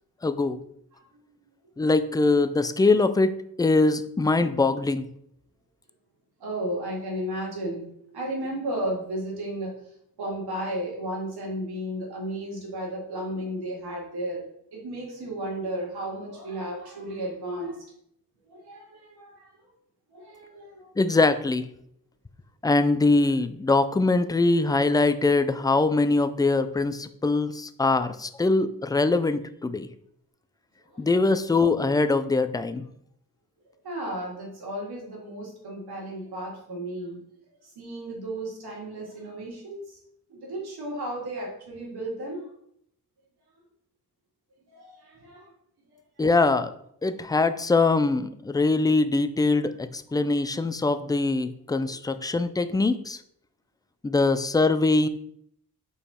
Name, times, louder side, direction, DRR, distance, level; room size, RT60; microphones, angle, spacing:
voice 1, 0.2-0.6 1.8-5.1 21.0-21.7 22.6-29.9 31.0-32.9 46.2-46.7 47.0-53.2 54.0-55.1, left 3 dB, 10° left, 11 dB, 0.3 m, -23 dB
voice 2, 6.4-7.8 8.1-9.7 10.2-14.4 14.7-17.8 18.5-19.5 20.1-20.9 30.9-31.0 33.8-37.2 37.6-40.0 40.3-42.5 44.7-45.5, right 1 dB, 80° right, -2 dB, 2.5 m, -34 dB
5.3 x 4.8 x 4.3 m, 0.71 s
cardioid pair, 105°, 38 cm